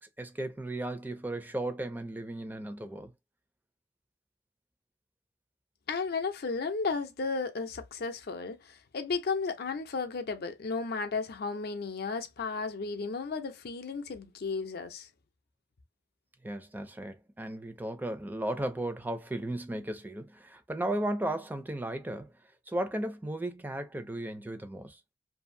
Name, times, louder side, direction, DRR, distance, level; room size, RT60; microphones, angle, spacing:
voice 1, 0.2-3.1 16.4-22.3 22.7-25.0, right 1 dB, 10° right, 0.4 m, -35 dB
voice 2, 5.9-15.1, left 4 dB, 55° left, 0.5 m, -34 dB
2.6 x 2.4 x 2.6 m
head